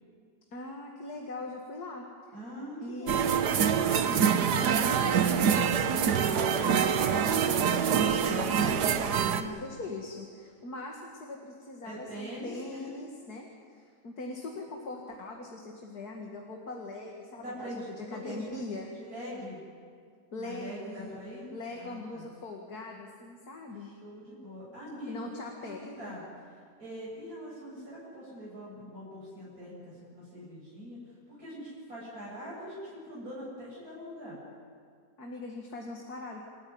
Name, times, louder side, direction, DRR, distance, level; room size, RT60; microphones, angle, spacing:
voice 1, 0.5-2.4 2.8-4.4 4.6-18.9 20.3-21.2 21.5-23.9 25.1-26.2 35.2-36.4, left 2 dB, 70° left, 0 dB, 2.6 m, -41 dB
voice 2, 2.3-3.3 4.4-5.3 9.0-9.6 11.8-12.9 17.4-18.6 18.9-19.6 20.4-21.5 21.7-22.3 23.8-25.2 25.6-26.2 26.8-31.0 31.3-34.4, equal, 65° right, -7 dB, 8.3 m, -43 dB
sound 1, 3.1-9.4, right 7 dB, 80° right, 1.6 m, -25 dB
28.0 x 14.5 x 9.7 m, 2.2 s
omnidirectional pair, 1.7 m